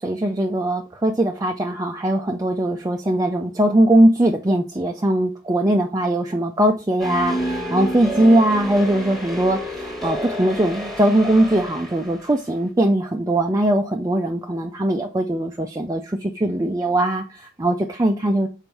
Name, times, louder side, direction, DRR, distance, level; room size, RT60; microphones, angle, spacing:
voice 1, 0.0-18.5, right 1 dB, 20° right, 0.5 m, -20 dB
sound 1, 7.0-12.3, equal, ahead, 1.3 m, -29 dB
5.3 x 4.1 x 4.4 m
head